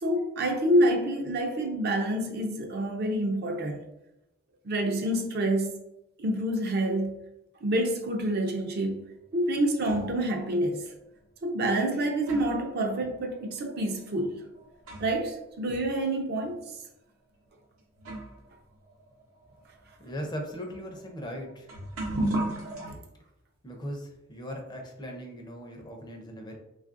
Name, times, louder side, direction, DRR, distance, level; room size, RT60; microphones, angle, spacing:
voice 1, 0.0-3.8 4.6-5.8 6.2-7.2 7.6-9.0 9.3-10.8 11.4-14.4 15.0-16.6 22.9-23.0, right 1 dB, 50° right, 0.5 m, -27 dB
sound 1, 9.1-10.2 11.2-11.3 11.9-15.3 15.6-15.7 16.6-16.7 17.5-17.6 18.0-22.9, right 1 dB, 80° right, 0.8 m, -37 dB
voice 2, 20.0-21.7 23.6-26.6, equal, 20° left, 0.5 m, -38 dB
3.3 x 2.4 x 2.4 m
head